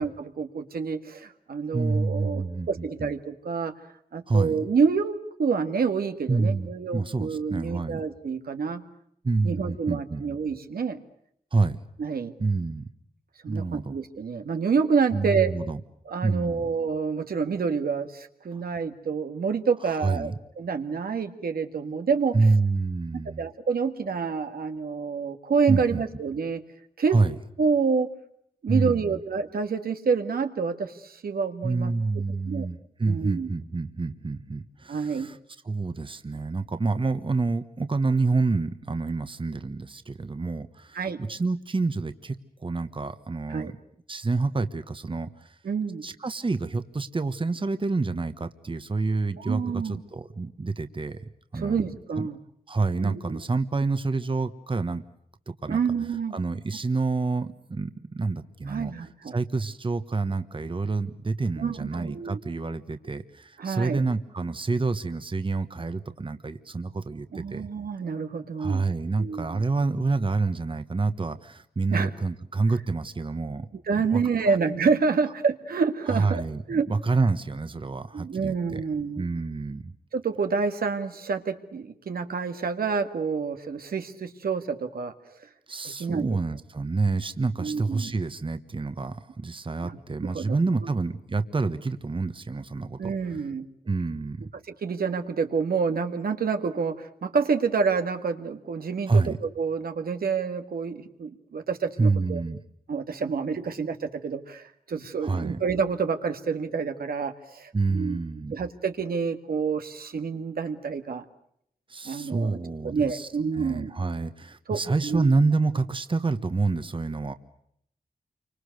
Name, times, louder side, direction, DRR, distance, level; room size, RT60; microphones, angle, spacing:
voice 1, 0.0-3.7 4.1-8.8 9.4-11.0 12.0-12.3 13.4-15.5 16.1-20.3 20.6-22.4 23.1-26.6 27.0-27.2 27.6-28.1 28.6-31.9 32.5-32.7 33.1-33.5 34.9-35.3 40.9-41.2 43.5-43.7 45.6-46.0 49.4-50.0 51.6-52.4 53.0-53.4 55.7-56.4 58.7-59.4 61.6-62.4 63.6-64.0 67.3-68.8 69.2-69.6 71.9-72.1 73.7-76.4 76.7-76.9 78.1-79.2 80.1-85.1 86.0-86.3 87.6-88.1 89.8-90.6 93.0-93.7 94.8-102.4 102.9-108.2 108.5-111.2 112.0-112.6 112.8-113.9 114.7-115.3, right 5 dB, 90° right, 7 dB, 1.9 m, -28 dB
voice 2, 1.7-3.1 4.3-4.7 6.3-8.0 9.2-10.4 11.5-11.8 12.4-12.9 13.5-13.9 15.1-15.8 16.2-16.7 18.5-18.6 20.0-20.4 22.3-23.5 25.7-26.0 27.1-27.3 28.7-29.2 31.6-35.4 35.6-43.7 44.1-45.6 46.0-51.2 51.5-51.8 52.2-52.3 52.7-55.0 55.5-55.8 56.3-58.9 59.3-67.6 68.6-73.7 74.1-74.2 74.5-74.6 76.1-78.8 79.2-79.9 85.7-93.1 93.8-94.5 99.1-99.4 102.0-102.6 105.2-105.6 107.7-108.5 111.9-113.3 113.5-117.3, right 3 dB, 35° right, 10 dB, 1.3 m, -28 dB
29.0 x 25.0 x 6.6 m, 0.70 s
wide cardioid pair, 85°, 15 cm